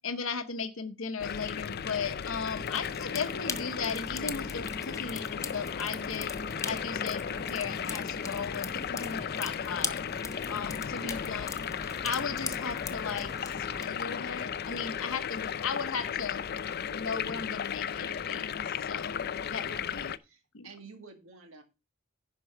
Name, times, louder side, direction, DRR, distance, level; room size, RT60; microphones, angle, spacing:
voice 1, 0.0-6.4 6.6-10.0 10.5-11.5 12.0-16.4 16.9-19.2 19.5-20.1 20.5-20.7, left 5 dB, 85° left, 8 dB, 1.0 m, -36 dB
sound 1, 1.2-20.2, left 7 dB, 50° left, 0.5 m, -35 dB
sound 2, 2.3-13.9, left 4 dB, 15° left, 0.7 m, -40 dB
voice 2, 11.0-11.3 19.6-19.9 20.2-21.6, right 3 dB, 85° right, 5 dB, 1.9 m, -49 dB
11.0 x 4.5 x 5.8 m, 0.28 s
head